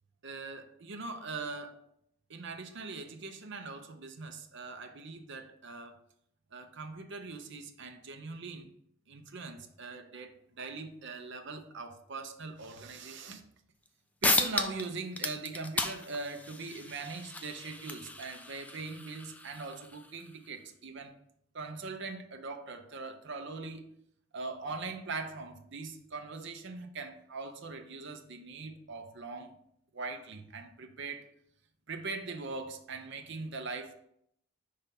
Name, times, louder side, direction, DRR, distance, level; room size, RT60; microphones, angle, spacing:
voice 1, 0.2-1.9 2.3-6.0 6.5-8.7 9.1-13.5 14.2-21.1 21.5-23.8 24.3-29.5 29.9-31.3 31.9-33.9, right 3 dB, 55° right, 0.7 m, -41 dB
sound 1, 13.9-14.0 14.2-14.9 15.1-20.3, left 2 dB, 5° left, 0.3 m, -34 dB
5.6 x 3.4 x 5.3 m
head